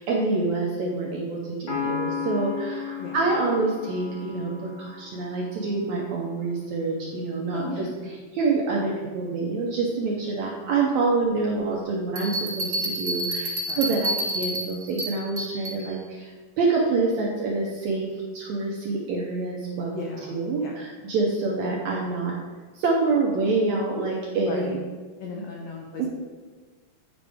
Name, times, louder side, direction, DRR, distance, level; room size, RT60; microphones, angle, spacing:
voice 1, 0.0-7.9 8.3-16.3 16.6-20.0 20.3-22.3 22.7-24.8 25.4-25.5 26.0-26.1, right 3 dB, 75° right, -2 dB, 1.7 m, -26 dB
Piano, 1.7-5.3, left 7 dB, 45° left, 1.8 m, -33 dB
voice 2, 7.5-8.2 13.7-13.9 19.9-20.8 24.4-24.7 25.2-26.1, left 3 dB, 85° left, -1 dB, 1.5 m, -36 dB
Bell, 12.1-15.8, right 1 dB, 60° right, 0.6 m, -29 dB
10.0 x 5.1 x 3.5 m, 1.4 s
omnidirectional pair, 4.1 m